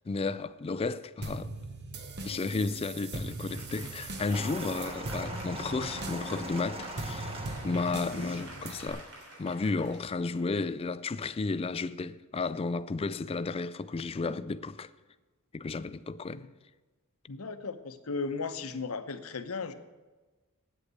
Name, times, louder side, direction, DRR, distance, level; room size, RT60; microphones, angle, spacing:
voice 1, 0.1-1.5 2.2-7.3 7.6-9.1 9.4-14.9 15.5-16.5, left 3 dB, 25° left, 0.3 m, -33 dB
sound 1, 1.2-8.9, right 2 dB, 50° right, 1.1 m, -40 dB
Applause, 3.3-10.9, right 2 dB, 75° right, 3.5 m, -48 dB
sound 2, 4.3-8.5 9.3-9.5, right 1 dB, 25° right, 1.0 m, -41 dB
voice 2, 17.3-19.7, left 4 dB, 75° left, 0.8 m, -36 dB
8.6 x 8.1 x 8.2 m
head